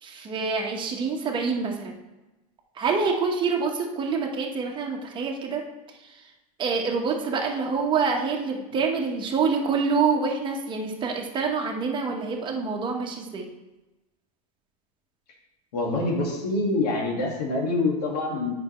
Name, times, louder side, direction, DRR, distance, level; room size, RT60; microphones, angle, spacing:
voice 1, 0.0-2.0 2.8-5.6 6.6-13.5, right 5 dB, 25° right, 1 dB, 1.2 m, -26 dB
voice 2, 15.7-18.5, left 2 dB, 85° left, -1 dB, 2.0 m, -25 dB
8.6 x 5.6 x 3.1 m, 1.1 s
supercardioid pair, 135°, 20 cm